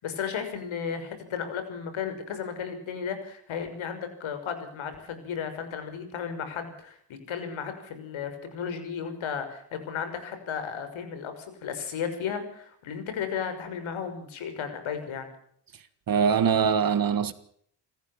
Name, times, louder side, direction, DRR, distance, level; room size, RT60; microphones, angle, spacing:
voice 1, 0.0-15.3, left 7 dB, 70° left, 6.0 m, -34 dB
voice 2, 16.1-17.3, right 7 dB, 40° right, 1.8 m, -23 dB
28.0 x 14.5 x 7.2 m
cardioid pair, 115°, 50 cm